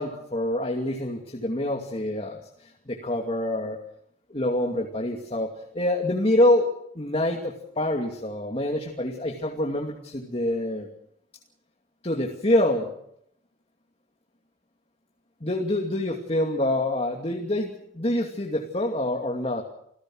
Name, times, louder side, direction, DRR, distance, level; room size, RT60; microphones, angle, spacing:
voice 1, 0.0-2.4 2.9-3.8 4.3-6.7 6.9-10.9 12.0-12.9 15.4-19.6, left 1 dB, 35° left, 1 dB, 2.6 m, -26 dB
28.5 x 17.5 x 6.4 m, 0.70 s
head